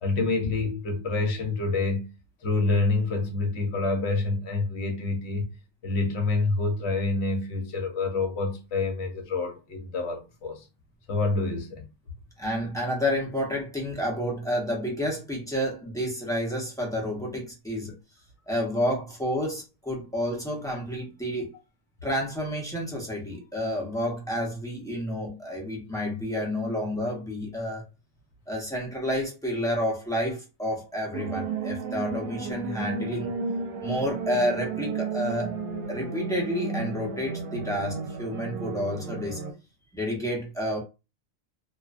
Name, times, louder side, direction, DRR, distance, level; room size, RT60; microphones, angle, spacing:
voice 1, 0.0-2.1 2.4-5.5 5.8-10.7 11.1-11.9, left 3 dB, 60° left, 0.9 m, -27 dB
voice 2, 12.4-18.0 18.5-21.5 22.0-27.8 28.5-33.3 33.8-35.5 35.9-39.4 39.9-40.8, equal, 5° left, 0.3 m, -30 dB
sound 1, 31.1-39.5, right 5 dB, 85° right, 1.0 m, -33 dB
2.4 x 2.1 x 2.4 m
omnidirectional pair, 1.4 m